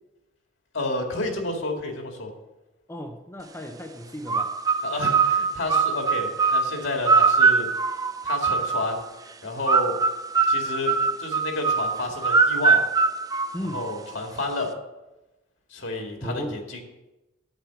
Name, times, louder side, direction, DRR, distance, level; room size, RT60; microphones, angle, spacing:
voice 1, 0.7-2.3 4.8-7.7 8.2-9.0 9.4-10.0 10.5-12.8 13.7-14.7 15.7-16.8, left 2 dB, 65° left, 2 dB, 2.1 m, -30 dB
voice 2, 2.9-4.5 13.5-13.8 16.2-16.6, equal, 10° left, 2 dB, 0.7 m, -35 dB
sound 1, 4.3-9.0 9.7-14.1, right 5 dB, 15° right, 0.4 m, -22 dB
9.0 x 8.7 x 5.8 m, 1.0 s
head